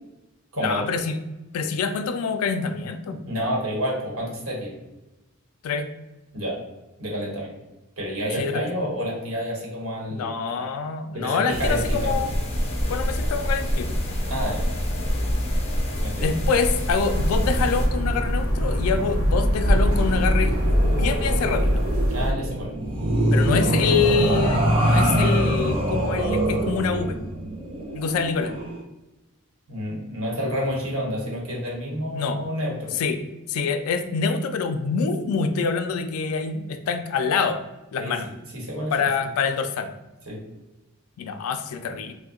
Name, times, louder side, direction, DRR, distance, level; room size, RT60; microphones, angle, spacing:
voice 1, 0.6-1.2 1.5-3.2 5.6-5.9 8.4-8.6 10.1-12.3 12.9-13.9 16.2-21.8 23.3-27.2 27.9-28.5 32.1-32.4 32.9-33.2 33.5-37.6 37.9-38.3 38.9-39.9 41.2-42.1, left 5 dB, 90° left, 10 dB, 0.3 m, -25 dB
voice 2, 3.1-4.7 6.3-6.5 7.0-7.5 8.0-10.7 11.1-12.1 14.3-14.6 16.0-16.3 22.1-22.7 29.7-32.9 38.0-38.1 38.5-38.9 40.3-40.4, equal, 85° right, -2 dB, 1.0 m, -29 dB
sound 1, 11.5-17.9, equal, 30° left, 0.5 m, -26 dB
sound 2, 17.1-22.3, equal, 70° right, 0.7 m, -22 dB
sound 3, 19.8-28.8, right 1 dB, 25° right, 0.5 m, -24 dB
2.7 x 2.1 x 3.7 m, 1.0 s
head